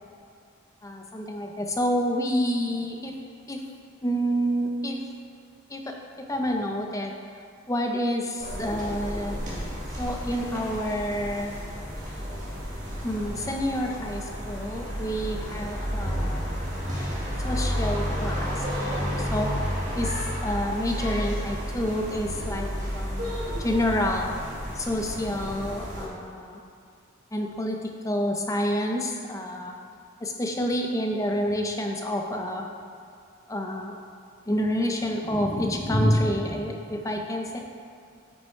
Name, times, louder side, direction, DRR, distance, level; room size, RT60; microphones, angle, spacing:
voice 1, 0.8-3.2 3.5-3.6 4.0-5.0 5.7-7.1 7.7-9.4 10.0-11.5 13.0-16.5 17.4-19.7 19.9-24.4 24.7-26.6 27.3-29.8 30.2-32.7 33.5-34.0 34.5-37.6, equal, 15° left, 1 dB, 0.6 m, -28 dB
sound 1, 8.4-26.1, equal, 35° right, 1.7 m, -31 dB
8.0 x 5.7 x 4.5 m, 2.4 s
head